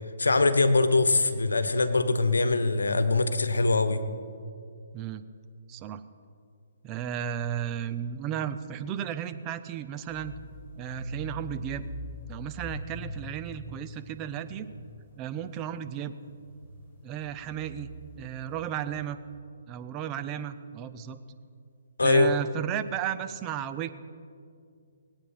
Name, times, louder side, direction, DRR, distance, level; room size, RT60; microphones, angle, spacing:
voice 1, 0.2-4.0 22.0-22.3, left 3 dB, 90° left, 10 dB, 1.1 m, -23 dB
voice 2, 4.9-5.2 5.7-6.0 6.8-10.3 10.8-11.9 12.3-14.7 15.2-16.1 17.0-17.9 18.2-19.2 19.7-21.2 22.0-23.9, right 10 dB, 25° right, 11 dB, 0.7 m, -34 dB
sound 1, 10.1-19.0, equal, 20° left, 4.8 m, -43 dB
20.0 x 8.9 x 5.7 m, 2.3 s
hypercardioid pair, 145°, 0 cm